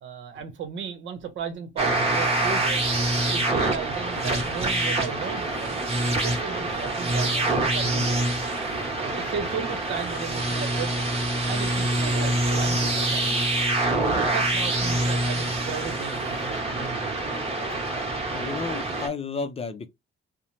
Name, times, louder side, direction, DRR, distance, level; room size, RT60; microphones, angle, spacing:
voice 1, 0.0-2.8 3.3-8.3 9.0-10.9 11.4-13.6 14.1-17.2, right 6 dB, 75° right, 0.8 m, -35 dB
sound 1, 1.8-19.1, right 2 dB, 30° right, 1.0 m, -25 dB
voice 2, 18.3-19.9, left 4 dB, 30° left, 0.5 m, -32 dB
2.6 x 2.1 x 3.1 m
cardioid pair, 90°, 20 cm